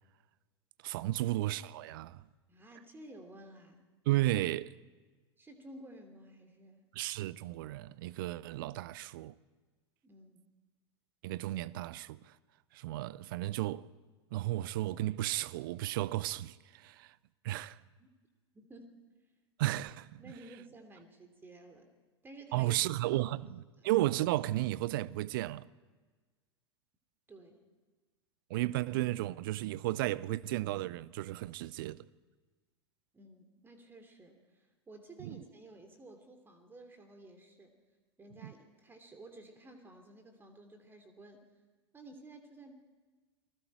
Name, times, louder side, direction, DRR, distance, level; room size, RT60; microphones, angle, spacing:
voice 1, 0.8-2.2 4.1-4.7 6.9-9.3 11.2-12.3 12.7-13.9 14.3-17.1 17.4-17.8 19.6-20.2 22.5-25.7 28.5-32.0 35.2-35.4 38.4-38.5, right 16 dB, 50° right, 0.6 m, -34 dB
voice 2, 2.5-3.9 5.4-6.8 10.0-10.5 18.0-18.1 18.5-18.9 20.2-21.9 22.2-22.8 23.2-23.4 27.3-27.6 33.1-37.8 38.2-41.4 41.9-42.7, right 2 dB, 15° right, 2.7 m, -53 dB
29.0 x 20.0 x 4.6 m
figure-of-eight pair, 90°, 14 cm